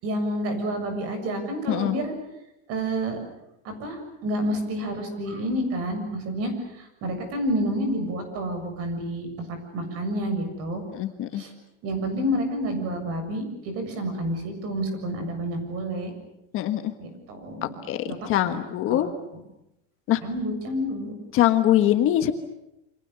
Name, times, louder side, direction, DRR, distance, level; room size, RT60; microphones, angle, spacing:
voice 1, 0.0-2.1 2.7-3.2 3.6-10.8 11.3-11.5 11.8-16.1 17.0-17.8 18.0-18.6 18.9-19.1 20.2-21.1, equal, 40° right, 7 dB, 7.2 m, -29 dB
voice 2, 10.9-11.4 16.5-16.9 17.9-18.0 18.3-19.1 20.1-20.2 21.3-22.3, left 13 dB, 35° left, 8 dB, 1.5 m, -22 dB
29.0 x 26.5 x 6.9 m, 0.86 s
supercardioid pair, 170°, 37 cm